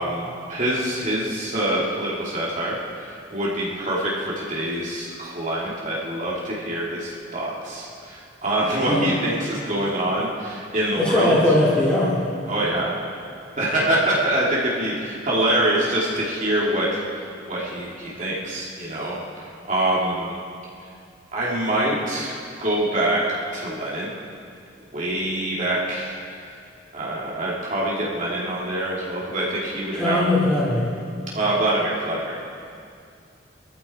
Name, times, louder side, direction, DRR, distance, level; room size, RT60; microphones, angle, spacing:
voice 1, 0.0-11.4 12.5-13.0 13.6-20.4 21.3-22.3 22.6-24.1 24.9-26.5 26.9-30.2 31.3-32.4, right 1 dB, 45° right, -6 dB, 2.8 m, -25 dB
voice 2, 10.9-12.2 29.9-30.9, left 1 dB, 5° left, -10 dB, 3.4 m, -20 dB
22.0 x 14.0 x 4.4 m, 2.4 s
head